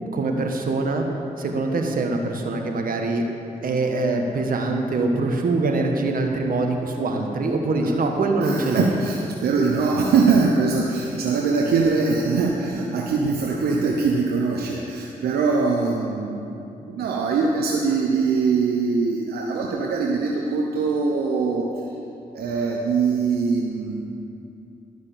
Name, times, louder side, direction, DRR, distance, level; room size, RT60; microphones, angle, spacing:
voice 1, 0.1-1.0 1.4-3.2 3.6-8.9, right 3 dB, 65° right, 3 dB, 1.5 m, -23 dB
voice 2, 8.4-16.4 16.9-21.7 22.3-24.0, right 4 dB, 85° right, -1 dB, 0.9 m, -22 dB
12.5 x 6.3 x 7.5 m, 2.7 s
supercardioid pair, 55°, 16 cm